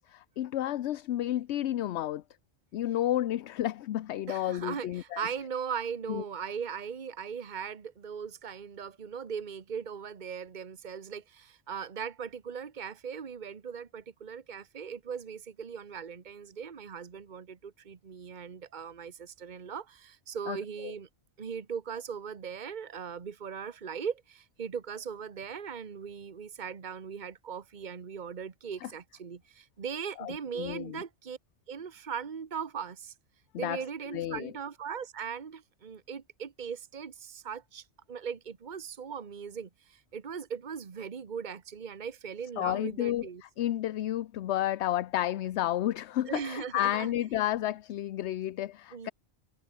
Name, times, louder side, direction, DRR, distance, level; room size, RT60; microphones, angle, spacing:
voice 1, 0.0-2.2 2.7-5.2 6.1-6.2 20.5-20.6 20.8-20.9 28.8-28.9 30.2-31.0 33.5-33.8 34.1-34.5 42.6-43.3 43.6-49.1, left 13 dB, 75° left, 0.9 m, -31 dB
voice 2, 4.3-21.1 21.4-31.4 31.7-33.1 33.6-43.4 46.2-47.2 48.9-49.1, right 7 dB, 45° right, 1.3 m, -39 dB
omnidirectional pair, 1.2 m